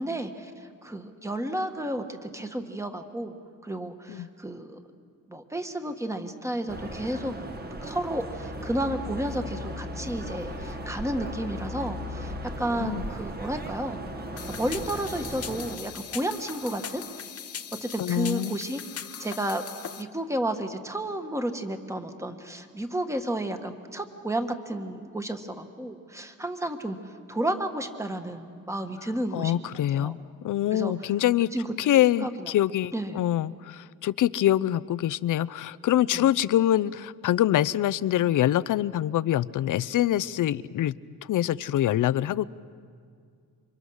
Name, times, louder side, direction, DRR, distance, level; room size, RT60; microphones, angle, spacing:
voice 1, 0.0-3.4 3.6-4.8 5.3-7.4 7.8-14.0 14.5-17.0 17.8-19.7 20.0-27.0 27.3-30.1 30.7-31.1 31.5-31.6 31.9-32.5 32.9-33.2 36.1-36.3, right 1 dB, 10° right, 7 dB, 1.4 m, -32 dB
sound 1, 6.7-15.8, equal, 30° right, 1.3 m, -36 dB
sound 2, 14.4-20.0, left 8 dB, 50° left, 0.9 m, -40 dB
voice 2, 18.0-18.6 29.3-30.2 30.4-31.5 31.8-40.9 41.3-42.5, left 12 dB, 70° left, 18 dB, 0.6 m, -25 dB
28.5 x 25.0 x 6.4 m, 2.2 s
cardioid pair, 130°, 32 cm